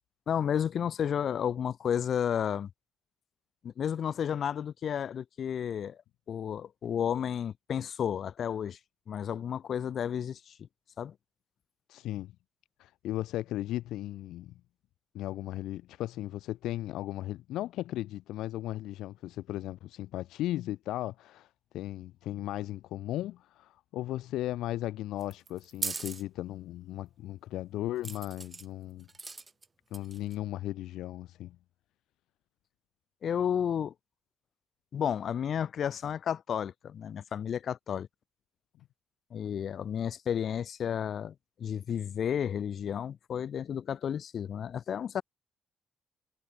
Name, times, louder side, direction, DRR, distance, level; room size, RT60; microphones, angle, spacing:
voice 1, 0.3-2.7 3.6-6.0 6.3-8.8 9.1-10.5 11.0-11.1 33.2-33.9 34.9-38.1 39.3-45.2, left 8 dB, 60° left, 1.4 m, -32 dB
voice 2, 11.9-12.3 12.8-14.5 15.1-21.5 21.7-29.1 29.9-31.6, left 14 dB, 85° left, 0.5 m, -36 dB
sound 1, 25.2-26.2 28.0-28.7 29.1-29.6 29.9-30.3, right 4 dB, 30° right, 1.1 m, -38 dB
cardioid pair, 90°, 0 cm